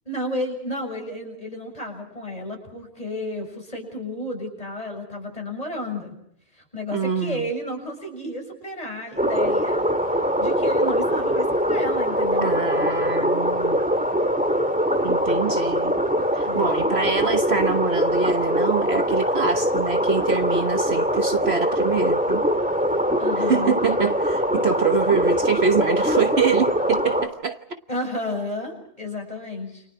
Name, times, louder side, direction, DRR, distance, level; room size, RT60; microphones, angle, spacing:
voice 1, 0.1-6.2 6.7-9.8 10.4-12.5 16.5-16.7 23.2-23.8 27.9-29.8, left 1 dB, 25° left, 6.9 m, -32 dB
voice 2, 6.9-7.5 12.4-13.8 15.0-15.9 16.3-22.4 23.4-27.6, right 5 dB, 55° right, 1.3 m, -25 dB
sound 1, 9.2-27.3, equal, 5° right, 2.1 m, -22 dB
29.5 x 28.0 x 4.7 m
omnidirectional pair, 1.4 m